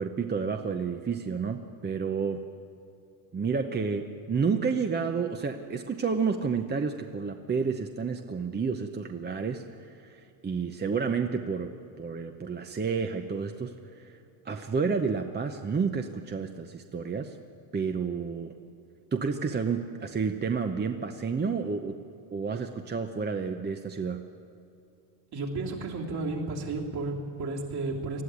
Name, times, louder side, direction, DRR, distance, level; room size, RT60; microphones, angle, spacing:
voice 1, 0.0-2.4 3.3-11.7 12.0-14.2 14.4-17.4 17.7-18.6 19.1-22.0 22.3-24.2, right 5 dB, 20° right, 6 dB, 0.8 m, -30 dB
voice 2, 25.3-28.2, right 3 dB, 50° right, -1 dB, 3.3 m, -32 dB
20.0 x 14.0 x 9.6 m, 2.7 s
cardioid pair, 120°, 48 cm